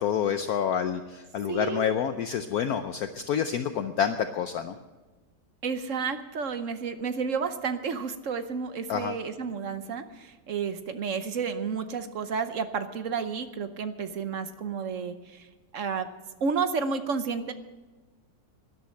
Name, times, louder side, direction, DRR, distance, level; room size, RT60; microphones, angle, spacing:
voice 1, 0.0-4.7 8.9-9.2, left 8 dB, 65° left, 9 dB, 1.0 m, -28 dB
voice 2, 1.5-2.2 5.6-15.5 15.7-16.1 16.4-17.5, right 5 dB, 55° right, 10 dB, 1.0 m, -31 dB
12.5 x 11.5 x 7.7 m, 1.2 s
omnidirectional pair, 1.9 m